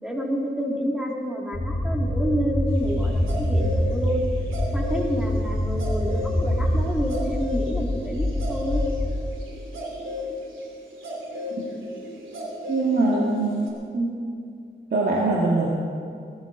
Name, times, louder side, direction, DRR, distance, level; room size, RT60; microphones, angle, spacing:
voice 1, 0.0-4.2 4.7-8.8, equal, 5° right, -2 dB, 2.7 m, -28 dB
sound 1, 1.5-9.1, equal, 35° left, 4.3 m, -25 dB
sound 2, 2.9-5.1 5.4-5.5 5.8-13.7, left 2 dB, 85° right, 2.7 m, -34 dB
voice 2, 12.7-13.6 13.9-14.1 14.9-15.7, right 2 dB, 60° right, -4 dB, 2.1 m, -22 dB
21.5 x 12.5 x 4.0 m, 2.3 s
cardioid pair, 70°, 20 cm